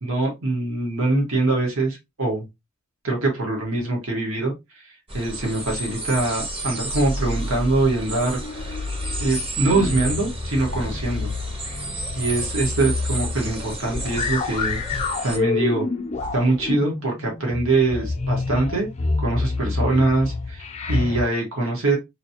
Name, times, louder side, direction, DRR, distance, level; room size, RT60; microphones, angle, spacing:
voice 1, 0.0-2.5 3.0-8.8 9.2-11.3 12.2-14.8 15.2-15.9 16.3-18.9 19.2-22.0, right 2 dB, 70° right, 0 dB, 1.4 m, -23 dB
sound 1, 5.1-15.4, right 2 dB, 25° right, 0.8 m, -33 dB
sound 2, 6.9-21.2, left 3 dB, 30° left, 0.5 m, -28 dB
5.0 x 2.8 x 2.8 m, 0.21 s
head